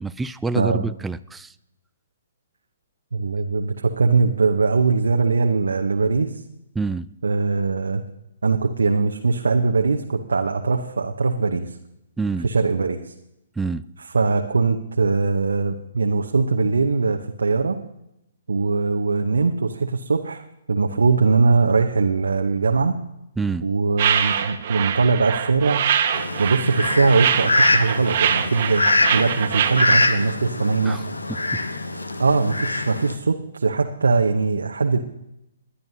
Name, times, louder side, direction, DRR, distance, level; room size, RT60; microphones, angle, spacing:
voice 1, 0.0-1.5 6.8-7.1 12.2-12.5 13.6-13.8 23.4-23.7 30.8-31.0 31.5-31.6, right 3 dB, 5° right, 13 dB, 0.3 m, -27 dB
voice 2, 3.1-6.4 7.2-8.0 8.4-11.8 12.4-13.1 14.0-17.8 18.5-23.0 23.6-25.8 26.4-28.8 29.1-31.0 32.2-35.0, right 4 dB, 70° right, 4 dB, 0.8 m, -21 dB
sound 1, 24.0-30.1, right 8 dB, 45° right, 1.1 m, -23 dB
Fowl, 26.1-33.1, left 2 dB, 80° left, 1.1 m, -23 dB
21.0 x 10.0 x 2.8 m, 0.86 s
figure-of-eight pair, 125°, 0 cm